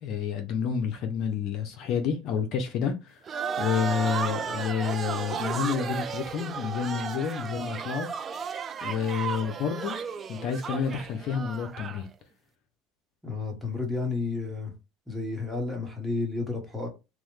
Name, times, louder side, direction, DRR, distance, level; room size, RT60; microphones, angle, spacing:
voice 1, 0.0-3.2 3.6-8.1 8.8-10.0 10.3-12.1, left 7 dB, 55° left, 0.5 m, -29 dB
sound 1, 3.3-12.0, right 6 dB, 30° right, 0.3 m, -34 dB
voice 2, 13.2-14.7 15.1-16.9, left 3 dB, ahead, 1.1 m, -31 dB
2.9 x 2.1 x 3.0 m
supercardioid pair, 110°, 0 cm